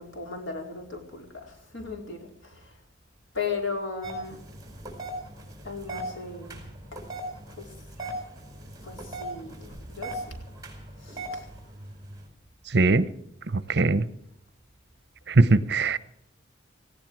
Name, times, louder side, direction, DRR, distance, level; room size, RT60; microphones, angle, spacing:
voice 1, 0.0-2.8 3.3-4.4 5.6-6.6 6.9-7.0 7.6-7.7 8.8-10.4 11.0-11.5, left 4 dB, 85° left, 2 dB, 4.5 m, -36 dB
sound 1, 4.0-12.3, right 1 dB, 20° right, 4.7 m, -39 dB
voice 2, 12.7-13.0 13.7-14.0 15.3-16.0, right 3 dB, 55° right, 16 dB, 0.8 m, -20 dB
18.0 x 16.5 x 4.7 m, 0.73 s
head